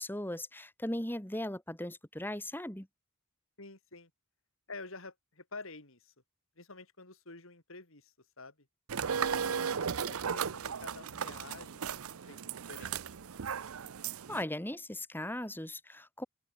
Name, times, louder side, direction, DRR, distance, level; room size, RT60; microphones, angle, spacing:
voice 1, 0.0-2.9 9.5-9.6 14.3-16.2, left 1 dB, 10° left, 2.8 m, -38 dB
voice 2, 3.6-4.1 4.7-6.1 6.6-8.5 9.3-12.4 12.7-13.0, left 3 dB, 65° left, 5.1 m, -49 dB
sound 1, 8.9-14.4, right 7 dB, 75° right, 0.6 m, -36 dB
open air
head